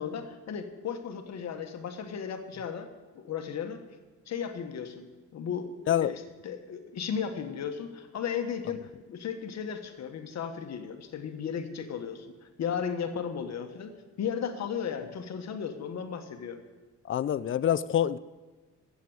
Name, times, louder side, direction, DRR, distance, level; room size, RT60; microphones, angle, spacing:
voice 1, 0.0-2.9 3.1-3.8 4.3-5.1 5.3-5.7 6.0-12.3 12.6-16.6, left 7 dB, 60° left, 1.4 m, -35 dB
voice 2, 17.1-18.2, left 10 dB, 40° left, 0.5 m, -26 dB
12.5 x 8.5 x 7.9 m
cardioid pair, 90°, 30 cm